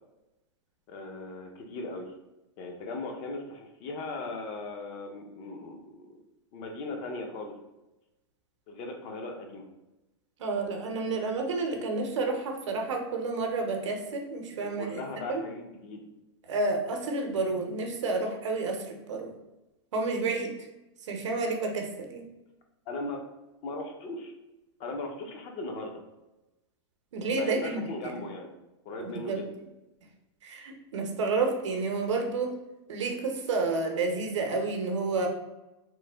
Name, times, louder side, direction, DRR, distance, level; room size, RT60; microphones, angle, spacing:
voice 1, 0.9-2.1 2.6-6.2 6.5-7.5 8.7-9.6 14.6-16.1 22.9-23.2 23.6-24.3 24.8-26.0 27.3-28.5 28.8-29.5, left 2 dB, 35° left, 3 dB, 0.5 m, -38 dB
voice 2, 10.4-15.0 15.3-15.4 16.5-19.3 19.9-20.7 21.0-22.2 27.1-27.8 29.0-29.4 30.4-32.6 32.9-35.3, right 3 dB, 85° right, 3 dB, 0.7 m, -30 dB
3.1 x 2.1 x 3.3 m, 1.0 s
supercardioid pair, 150°, 15 cm